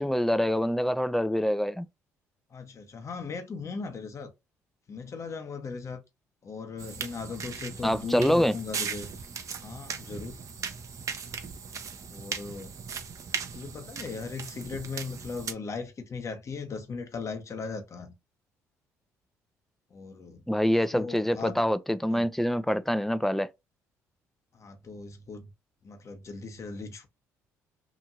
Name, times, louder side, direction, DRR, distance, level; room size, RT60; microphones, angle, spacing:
voice 1, 0.0-1.9 7.8-8.5 20.5-23.5, equal, 5° left, 0.4 m, -25 dB
voice 2, 2.5-4.3 4.9-6.0 6.4-9.1 9.6-10.4 12.1-12.7 13.5-18.1 19.9-20.4 20.9-21.6 22.1-22.2 24.5-25.5 25.8-27.1, left 4 dB, 40° left, 0.9 m, -38 dB
sound 1, 6.8-15.5, right 6 dB, 45° right, 0.6 m, -38 dB
2.9 x 2.6 x 2.5 m
hypercardioid pair, 55°, 8 cm